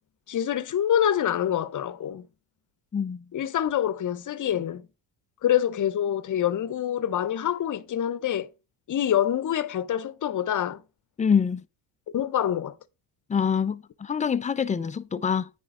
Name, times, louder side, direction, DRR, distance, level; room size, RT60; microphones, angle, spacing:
voice 1, 0.3-2.3 3.3-4.9 5.4-8.5 8.9-10.8 12.1-12.8, left 10 dB, 40° left, 0.8 m, -26 dB
voice 2, 2.9-3.2 11.2-11.6 13.3-15.5, left 6 dB, 15° left, 0.4 m, -25 dB
9.7 x 3.5 x 4.9 m
supercardioid pair, 75°, 49 cm